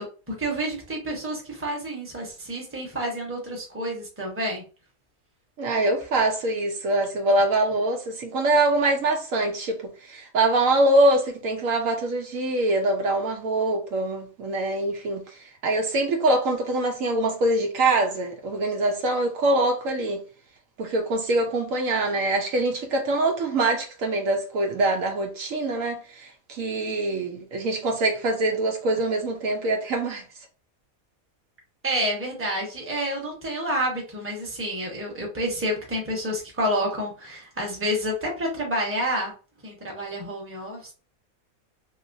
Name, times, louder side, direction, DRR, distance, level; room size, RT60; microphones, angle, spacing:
voice 1, 0.0-4.6 31.8-39.3 39.6-40.9, equal, 10° right, 0.9 m, -29 dB
voice 2, 5.6-20.2 20.8-30.2, right 2 dB, 70° right, 1.0 m, -24 dB
3.1 x 3.0 x 2.6 m
omnidirectional pair, 1.5 m